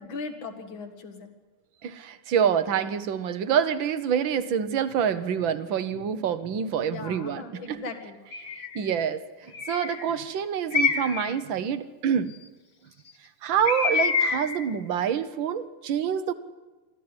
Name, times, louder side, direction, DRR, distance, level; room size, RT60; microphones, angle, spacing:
voice 1, 0.0-1.3 6.9-8.2, left 4 dB, 60° left, 6 dB, 2.6 m, -38 dB
voice 2, 1.8-7.8 8.7-12.4 13.4-16.3, right 8 dB, 65° right, 12 dB, 1.6 m, -27 dB
Bird, 8.3-8.8 9.5-10.1 10.7-11.3 13.7-14.7, left 5 dB, 35° left, 1.2 m, -26 dB
24.5 x 14.5 x 9.8 m, 1.2 s
omnidirectional pair, 2.4 m